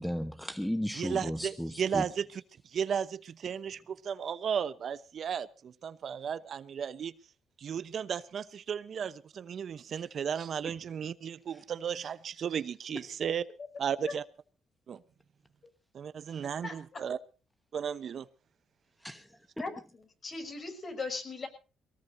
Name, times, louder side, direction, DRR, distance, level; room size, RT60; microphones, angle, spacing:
voice 1, 0.0-2.1 16.3-16.4 19.0-19.3, equal, 5° left, 1.1 m, -35 dB
voice 2, 1.0-7.1 7.6-13.4 13.8-14.2 14.9-15.0 15.9-17.2 17.7-18.3, right 7 dB, 55° right, 0.9 m, -34 dB
voice 3, 16.6-17.0 19.6-21.5, left 3 dB, 45° left, 6.1 m, -39 dB
23.0 x 18.5 x 2.7 m
cardioid pair, 90°, 0 cm